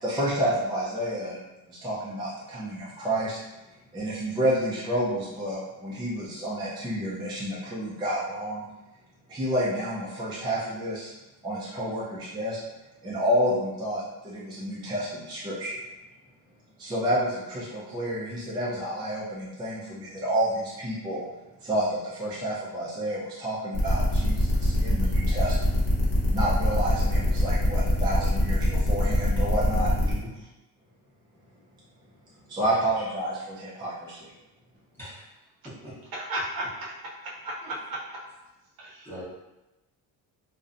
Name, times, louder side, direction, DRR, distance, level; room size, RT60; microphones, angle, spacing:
voice 1, 0.0-1.4 1.7-3.4 3.9-8.6 9.3-11.1 11.4-12.6 13.0-15.7 16.8-21.3 21.6-25.8 26.3-29.9 32.5-34.3, right 1 dB, 15° right, -7 dB, 0.3 m, -29 dB
sound 1, 23.7-30.1, left 1 dB, 40° left, 0.8 m, -25 dB
voice 2, 29.7-30.3 32.6-32.8 35.0-35.3 35.8-35.9 37.6-37.7 39.0-39.2, left 1 dB, 5° left, -9 dB, 0.7 m, -41 dB
voice 3, 36.1-38.3 38.8-39.1, right 1 dB, 75° right, -3 dB, 0.7 m, -35 dB
2.6 x 2.1 x 2.4 m, 1.0 s
cardioid pair, 145°, 36 cm